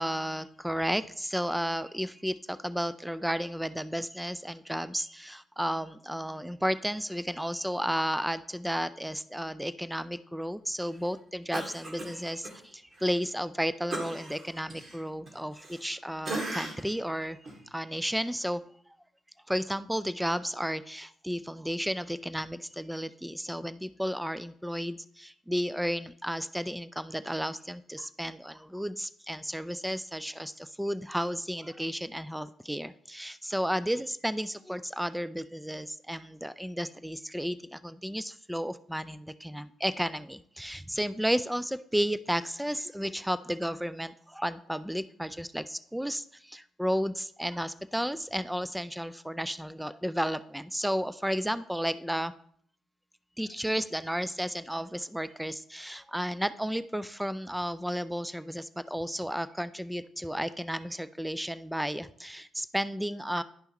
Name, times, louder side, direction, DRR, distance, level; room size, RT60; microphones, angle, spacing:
voice 1, 0.0-17.4 17.7-18.6 19.5-52.3 53.4-63.4, equal, 5° right, 14 dB, 0.4 m, -33 dB
Cough, 11.5-12.6 12.9-13.1 13.9-16.0 16.2-17.0 17.4-17.6, right 2 dB, 45° right, 2.3 m, -38 dB
11.5 x 5.5 x 3.0 m, 0.63 s
hypercardioid pair, 50°, 0 cm